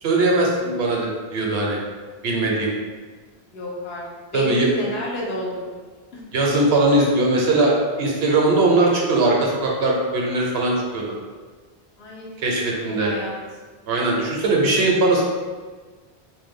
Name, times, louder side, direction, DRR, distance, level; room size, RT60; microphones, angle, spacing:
voice 1, 0.0-1.8 2.2-2.7 4.3-4.7 6.3-11.2 12.4-13.1 13.9-15.2, right 2 dB, 75° right, -2 dB, 0.9 m, -20 dB
voice 2, 3.5-4.0 4.3-5.8 6.1-6.2 12.0-12.3 12.9-13.4, left 1 dB, 75° left, -4 dB, 0.9 m, -30 dB
2.6 x 2.2 x 3.4 m, 1.4 s
omnidirectional pair, 1.1 m